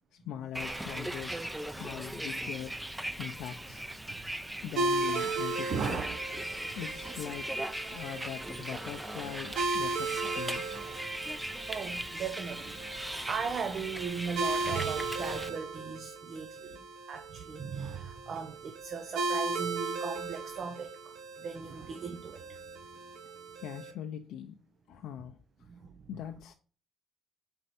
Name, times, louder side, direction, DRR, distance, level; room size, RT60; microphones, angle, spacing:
voice 1, 0.1-2.8 3.2-3.8 4.6-6.0 6.7-10.6 16.7-16.8 23.0-23.1 23.6-24.6 24.9-25.7 26.1-26.5, left 10 dB, 85° left, 0.5 m, -42 dB
Bus, 0.5-15.5, right 1 dB, 5° right, 0.5 m, -39 dB
sound 1, 4.8-23.9, right 3 dB, 80° right, 0.8 m, -37 dB
voice 2, 5.7-6.6 11.7-16.8 17.1-22.6 25.7-26.2, right 6 dB, 50° right, 0.6 m, -38 dB
5.2 x 4.5 x 4.1 m
cardioid pair, 110°, 0 cm